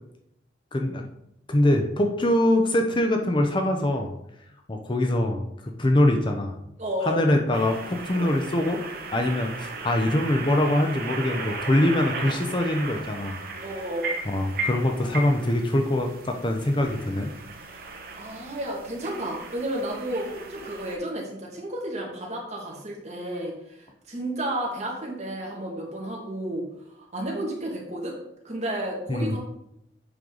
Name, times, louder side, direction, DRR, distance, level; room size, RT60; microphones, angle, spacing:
voice 1, 0.7-1.0 1.5-4.1 4.7-5.4 5.8-6.6 7.0-8.8 9.1-13.4 14.3-17.3 29.1-29.4, left 1 dB, 25° left, 4 dB, 0.7 m, -23 dB
voice 2, 6.8-7.2 13.6-14.1 17.6-17.8 18.2-26.6 27.0-28.2 28.4-29.4, right 1 dB, 40° right, -2 dB, 2.0 m, -32 dB
sound 1, 7.5-21.0, right 3 dB, 55° right, 1.2 m, -36 dB
7.8 x 5.3 x 3.9 m, 0.81 s
head